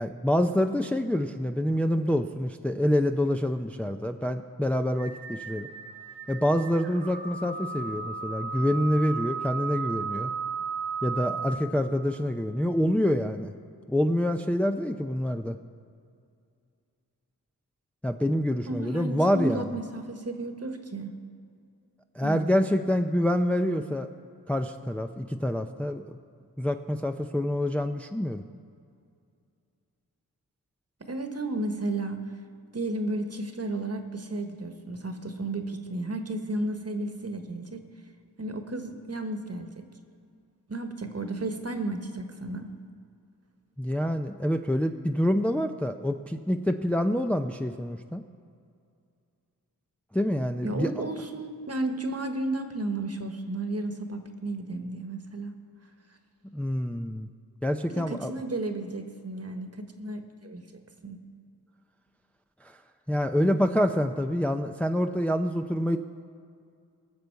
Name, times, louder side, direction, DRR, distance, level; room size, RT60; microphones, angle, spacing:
voice 1, 0.0-5.7 6.3-10.3 11.0-13.5 13.9-15.6 18.0-19.7 22.2-24.1 24.5-26.2 26.6-28.4 43.8-48.2 50.1-50.9 56.5-57.3 57.6-58.3 62.6-62.7 63.1-66.0, equal, 5° left, 6 dB, 0.5 m, -26 dB
sound 1, 5.0-11.5, right 5 dB, 85° right, 1.8 m, -35 dB
voice 2, 18.7-21.1 22.2-22.7 31.0-32.2 32.7-37.8 38.4-39.9 40.7-42.7 50.6-55.5 57.9-60.6 61.0-61.2, right 2 dB, 40° right, 6 dB, 1.3 m, -33 dB
20.0 x 6.8 x 4.6 m, 2.3 s
cardioid pair, 40°, 39 cm